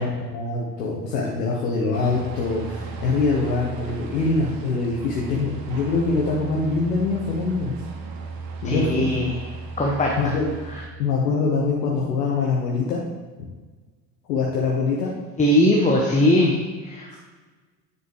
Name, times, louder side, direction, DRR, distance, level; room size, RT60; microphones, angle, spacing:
voice 1, 0.0-7.8 8.6-9.1 10.2-10.5 11.0-13.0 13.4-13.5 14.3-15.1, left 3 dB, 75° left, -2 dB, 1.1 m, -24 dB
sound 1, 1.9-10.9, right 4 dB, 45° right, 1.1 m, -36 dB
voice 2, 8.6-9.4 9.8-10.3 10.7-10.8 15.4-17.2, left 1 dB, 15° left, -1 dB, 1.0 m, -20 dB
9.6 x 4.3 x 3.3 m, 1.3 s
figure-of-eight pair, 65°, 49 cm